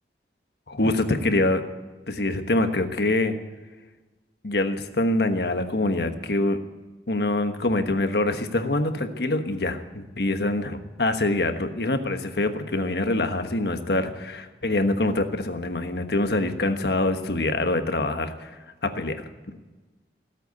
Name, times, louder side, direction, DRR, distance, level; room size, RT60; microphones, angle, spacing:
voice 1, 0.7-1.6 2.1-3.3 4.4-6.6 7.1-18.5 18.8-19.3, left 2 dB, 65° left, 7 dB, 1.3 m, -25 dB
17.0 x 8.2 x 9.5 m, 1.2 s
head